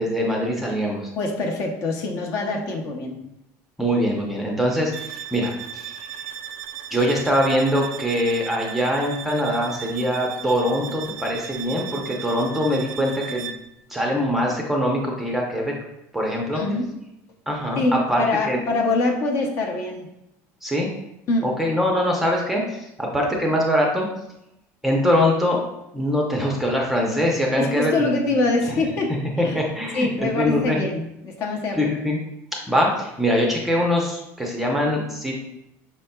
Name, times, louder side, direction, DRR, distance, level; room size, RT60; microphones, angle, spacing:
voice 1, 0.0-1.1 3.8-5.9 6.9-13.5 13.9-15.7 16.1-16.6 17.5-18.6 20.6-20.9 21.4-24.1 24.8-25.6 25.9-28.4 29.4-30.8 31.7-32.2 32.5-35.4, equal, 5° right, -1 dB, 0.6 m, -23 dB
voice 2, 1.2-3.2 16.5-16.9 17.7-20.1 21.3-21.5 27.5-29.6 29.9-31.9, left 2 dB, 45° left, 2 dB, 0.8 m, -24 dB
sound 1, 4.9-13.7, right 9 dB, 55° right, 0.3 m, -36 dB
5.6 x 4.0 x 2.2 m, 0.87 s
cardioid pair, 165°, 7 cm